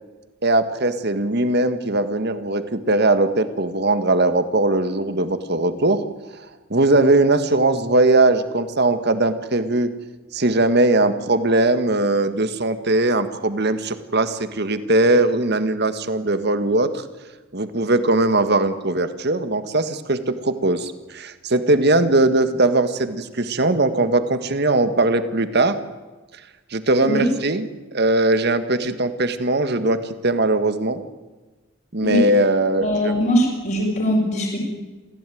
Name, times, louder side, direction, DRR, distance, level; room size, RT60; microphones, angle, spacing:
voice 1, 0.4-6.0 6.3-6.4 6.7-9.9 10.3-17.0 17.5-25.8 26.7-31.0 31.9-33.1, right 2 dB, 55° right, 10 dB, 1.8 m, -20 dB
voice 2, 32.8-34.6, equal, 45° left, -5 dB, 5.9 m, -21 dB
27.5 x 16.5 x 9.4 m, 1.2 s
head